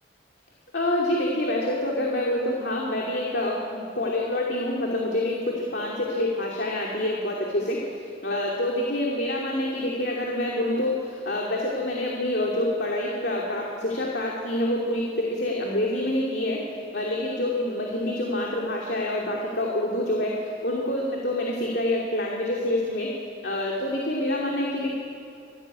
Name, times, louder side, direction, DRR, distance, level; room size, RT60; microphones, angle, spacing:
voice 1, 0.7-16.6 16.9-23.1 23.4-24.9, left 1 dB, 60° left, -2 dB, 2.8 m, -27 dB
25.5 x 14.0 x 9.6 m, 2.4 s
head